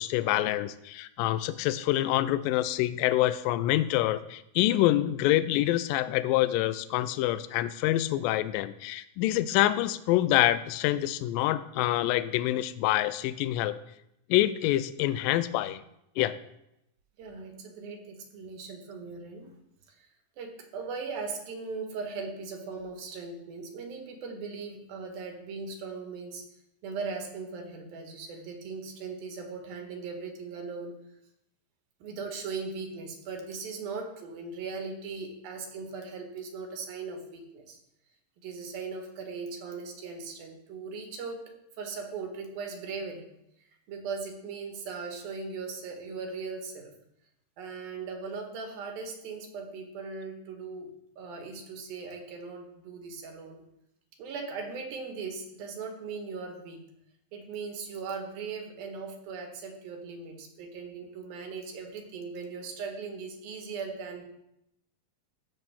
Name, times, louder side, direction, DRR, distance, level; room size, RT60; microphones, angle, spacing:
voice 1, 0.0-13.8 14.3-15.8 16.2-16.4, left 14 dB, 80° left, 14 dB, 2.2 m, -26 dB
voice 2, 17.2-19.5 19.9-20.1 20.4-26.4 26.8-31.0 32.0-37.8 38.4-41.5 41.8-43.2 43.9-46.9 47.6-50.9 51.2-53.6 54.2-56.8 57.3-64.3, right 4 dB, 85° right, 3 dB, 3.4 m, -39 dB
13.5 x 7.8 x 3.7 m, 0.80 s
omnidirectional pair, 4.1 m